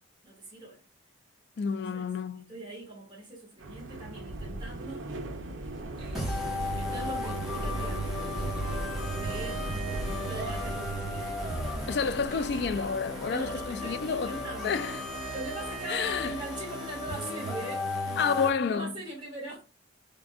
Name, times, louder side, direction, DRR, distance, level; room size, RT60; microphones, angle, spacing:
voice 1, 0.2-0.8 1.7-2.0 2.5-5.1 6.0-8.8 9.1-11.8 13.3-14.8 15.3-19.6, right 2 dB, 25° right, 1.6 m, -42 dB
voice 2, 1.6-2.4 11.9-15.0 15.9-16.4 18.2-18.9, left 5 dB, 55° left, 0.3 m, -30 dB
sound 1, 3.6-16.4, right 1 dB, 85° right, 0.7 m, -38 dB
sound 2, 6.2-18.5, left 1 dB, ahead, 1.3 m, -35 dB
4.4 x 3.7 x 2.3 m
head